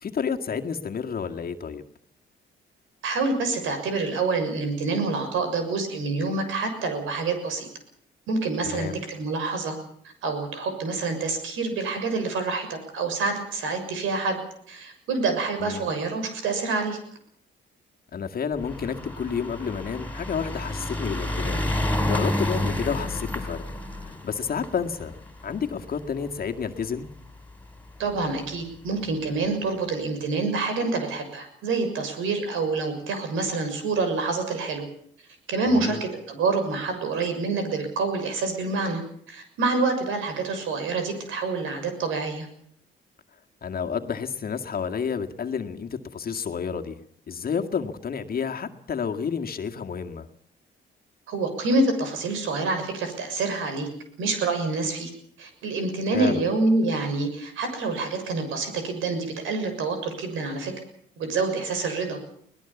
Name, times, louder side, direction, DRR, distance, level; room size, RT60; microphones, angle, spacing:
voice 1, 0.0-1.8 8.7-9.0 15.6-15.8 18.1-21.7 22.0-25.2 25.4-27.1 35.7-36.0 43.6-47.0 47.3-50.3 56.1-56.4, left 6 dB, 50° left, 5 dB, 2.0 m, -30 dB
voice 2, 3.0-7.7 8.3-9.8 10.2-14.4 14.7-17.0 28.0-34.9 35.5-39.0 39.3-42.5 51.3-53.9 54.2-55.1 55.4-60.7 61.2-62.2, right 3 dB, 85° right, 7 dB, 6.6 m, -27 dB
Car pass R-L, 18.6-27.1 27.9-28.0 28.2-28.3 28.5-28.6, left 1 dB, 10° left, 4.1 m, -30 dB
22.0 x 19.5 x 7.1 m, 0.64 s
cardioid pair, 90°, 20 cm